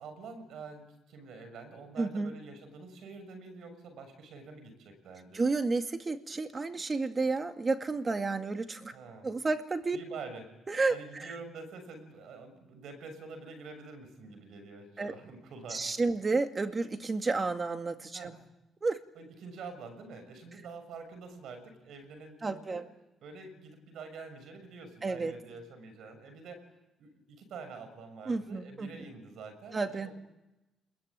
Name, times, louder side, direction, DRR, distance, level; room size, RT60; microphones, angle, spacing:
voice 1, 0.0-5.4 8.9-9.3 9.9-10.4 10.9-16.0 18.1-18.3 19.1-22.8 23.2-26.6 27.0-30.1, right 4 dB, 75° right, 8 dB, 6.6 m, -47 dB
voice 2, 2.0-2.3 5.3-8.9 9.2-10.0 10.7-11.3 15.0-15.1 15.7-18.4 18.8-19.0 22.4-22.9 25.0-25.4 28.3-29.1 29.7-30.1, right 3 dB, 30° right, 7 dB, 2.2 m, -31 dB
28.5 x 22.0 x 8.7 m, 0.97 s
cardioid pair, 90°, 0 cm